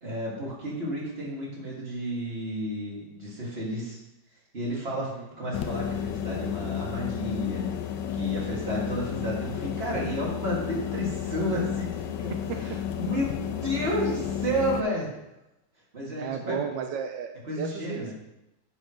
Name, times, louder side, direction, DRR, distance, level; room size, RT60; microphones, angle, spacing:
voice 1, 0.0-4.0 4.5-5.1 5.4-7.7 8.1-11.9 12.2-12.3 12.6-15.1 15.9-16.5 17.5-18.1, equal, 30° right, -5 dB, 2.8 m, -31 dB
sound 1, 5.5-14.8, left 9 dB, 75° left, 1.2 m, -32 dB
voice 2, 16.2-17.3 17.6-18.1, right 7 dB, 85° right, 5 dB, 1.4 m, -33 dB
10.0 x 7.7 x 3.3 m, 0.92 s
omnidirectional pair, 2.0 m